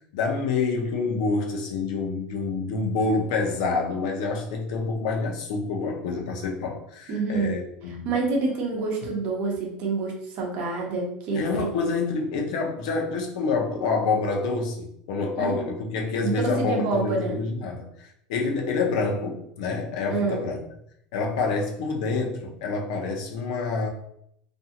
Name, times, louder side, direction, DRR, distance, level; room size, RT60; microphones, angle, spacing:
voice 1, 0.1-8.1 11.3-20.6 21.1-23.9, left 4 dB, 70° left, 1 dB, 0.6 m, -27 dB
voice 2, 7.1-7.5 7.9-11.9 15.4-15.5 16.2-16.3 16.6-17.3 20.1-20.4, right 3 dB, 40° right, -1 dB, 0.7 m, -27 dB
2.6 x 2.3 x 2.8 m, 0.72 s
cardioid pair, 170°, 4 cm